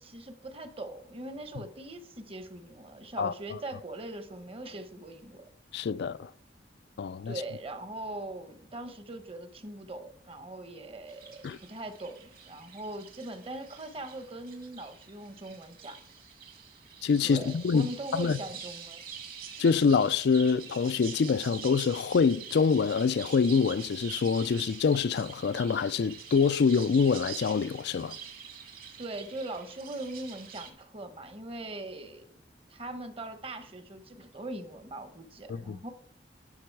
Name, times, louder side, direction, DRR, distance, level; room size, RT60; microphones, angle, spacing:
voice 1, 0.0-5.5 7.2-11.4 11.7-16.0 17.2-19.0 29.0-32.3 32.7-35.9, right 2 dB, 30° right, 1.0 m, -41 dB
voice 2, 3.2-3.6 5.7-6.3 7.0-7.4 11.4-11.6 17.0-18.4 19.6-28.2 35.5-35.8, left 5 dB, 60° left, 0.4 m, -26 dB
sound 1, 11.1-30.7, right 7 dB, 50° right, 1.8 m, -46 dB
11.5 x 6.2 x 4.6 m
head